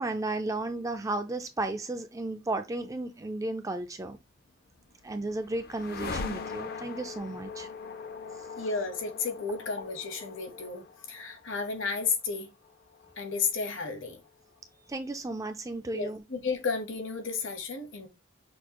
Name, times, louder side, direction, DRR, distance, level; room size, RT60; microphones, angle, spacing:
voice 1, 0.0-4.2 5.0-7.7 14.9-16.2, right 2 dB, 15° right, 0.3 m, -34 dB
sound 1, 4.5-14.6, left 4 dB, 45° left, 0.5 m, -42 dB
voice 2, 8.6-12.5 13.2-14.2 15.9-18.1, left 4 dB, 65° left, 1.1 m, -33 dB
6.2 x 2.3 x 2.9 m
head